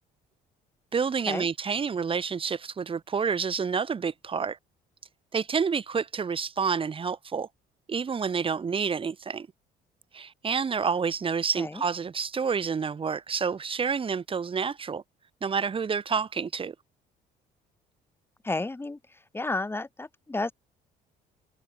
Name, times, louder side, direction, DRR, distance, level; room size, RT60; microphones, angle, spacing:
voice 1, 0.9-4.6 5.3-7.5 7.9-9.5 10.1-15.0 15.4-16.7, right 6 dB, 30° right, 2.4 m, -29 dB
voice 2, 18.4-19.0 19.3-20.5, left 2 dB, 15° left, 3.3 m, -31 dB
cardioid pair, 110°, 17 cm